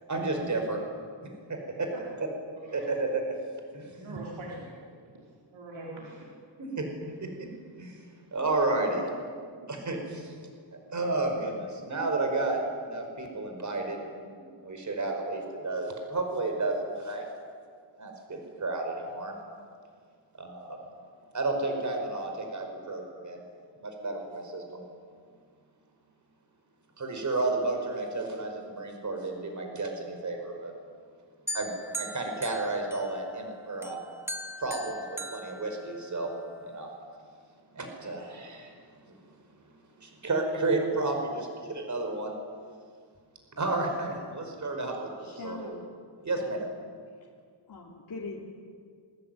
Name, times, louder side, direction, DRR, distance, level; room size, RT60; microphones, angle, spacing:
voice 1, 0.1-0.8 1.5-1.9 2.7-3.2 3.7-4.2 6.6-6.9 7.2-7.5 7.8-8.1 8.3-9.0 9.7-10.3 10.9-17.3 18.0-19.3 20.4-20.8 21.3-23.4 23.8-24.8 27.0-30.7 31.5-31.7 32.0-34.0 34.6-36.3 36.7-36.9 37.7-38.8 39.0-39.1 40.0-42.3 43.6-45.8 46.2-46.6, right 2 dB, 40° right, 3 dB, 5.3 m, -32 dB
voice 2, 4.0-4.7 5.5-6.2 9.4-9.7, right 2 dB, 80° right, -3 dB, 5.0 m, -42 dB
sound 1, 31.5-33.4 33.8-36.4, equal, 5° right, 1.5 m, -40 dB
voice 3, 45.2-45.9 46.4-46.7 47.1-47.3 47.7-48.4, left 4 dB, 45° left, -3 dB, 3.2 m, -42 dB
26.5 x 23.0 x 9.4 m, 2.1 s
wide cardioid pair, 170°, 47 cm